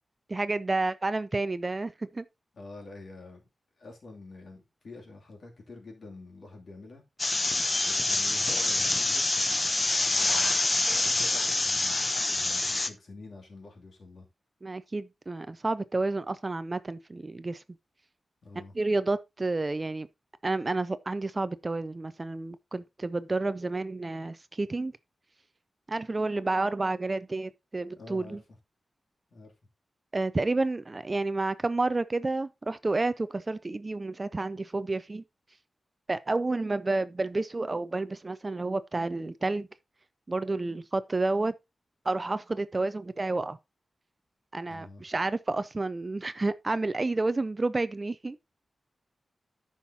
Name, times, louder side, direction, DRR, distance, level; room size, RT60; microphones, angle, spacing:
voice 1, 0.3-2.2 14.6-17.6 18.7-20.1 20.4-24.9 25.9-28.4 30.1-35.2 36.1-39.7 40.3-41.5 42.1-43.6 44.5-48.4, right 2 dB, 25° right, 0.4 m, -30 dB
voice 2, 2.5-3.5 3.8-7.0 7.8-9.3 10.0-10.6 11.0-12.0 12.3-14.3 18.4-18.7 28.0-28.4 29.3-29.5 44.7-45.0, left 2 dB, 55° left, 2.6 m, -47 dB
sound 1, 7.2-12.9, left 2 dB, 25° left, 0.6 m, -26 dB
14.0 x 5.7 x 2.7 m
wide cardioid pair, 170°, 0 cm